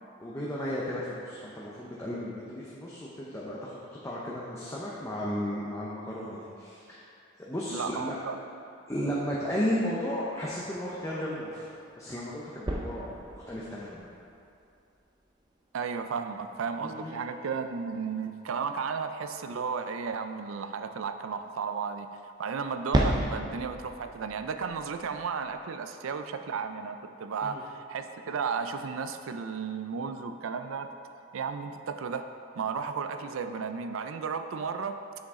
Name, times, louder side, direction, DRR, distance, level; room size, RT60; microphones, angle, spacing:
voice 1, 0.2-3.8 4.0-7.0 7.4-8.2 8.9-11.7 12.0-14.1 16.8-17.1 27.4-27.6, equal, 15° left, -6 dB, 0.7 m, -34 dB
voice 2, 7.7-8.4 15.7-22.1 22.4-30.9 31.3-32.3 32.6-35.0, right 5 dB, 85° right, 8 dB, 0.4 m, -34 dB
sound 1, 9.8-15.0 15.2-15.6 22.7-25.6, right 1 dB, 20° right, 0.5 m, -34 dB
7.1 x 6.4 x 3.7 m, 2.6 s
head